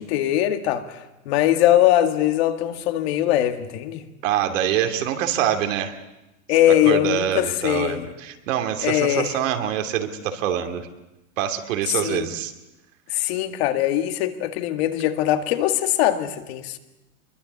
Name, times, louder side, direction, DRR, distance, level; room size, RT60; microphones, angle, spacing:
voice 1, 0.0-4.0 6.5-8.1 8.8-9.4 12.0-12.3 13.1-16.8, left 12 dB, 50° left, 1.8 m, -21 dB
voice 2, 4.2-6.0 6.7-10.9 11.4-12.5, right 10 dB, 65° right, 2.8 m, -25 dB
25.5 x 22.5 x 8.2 m
supercardioid pair, 165°, 40 cm